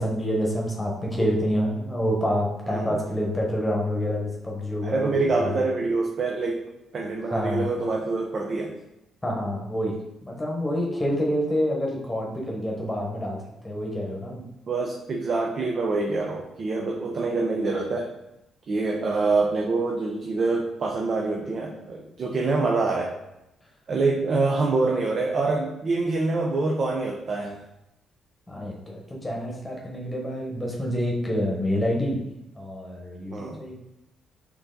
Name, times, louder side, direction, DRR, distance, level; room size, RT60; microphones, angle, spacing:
voice 1, 0.0-5.1 5.4-5.6 7.3-7.7 9.2-10.0 10.2-14.4 28.5-32.2 32.5-33.7, equal, 15° left, -2 dB, 1.0 m, -27 dB
voice 2, 4.8-8.7 14.4-18.1 18.7-23.1 23.9-27.6 33.3-33.6, right 3 dB, 50° right, 0 dB, 0.5 m, -26 dB
4.5 x 2.8 x 3.8 m, 0.89 s
cardioid pair, 90°, 0 cm